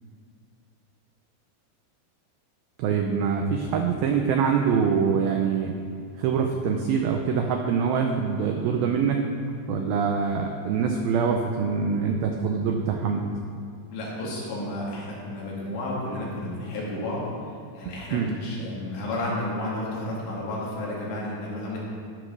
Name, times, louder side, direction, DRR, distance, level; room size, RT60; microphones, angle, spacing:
voice 1, 2.8-5.8 6.2-9.3 9.7-13.3 18.1-18.3, right 6 dB, 90° right, 3 dB, 2.0 m, -24 dB
voice 2, 13.9-17.3 17.7-21.8, left 1 dB, 80° left, -5 dB, 4.3 m, -32 dB
14.0 x 5.1 x 6.1 m, 2.3 s
omnidirectional pair, 5.0 m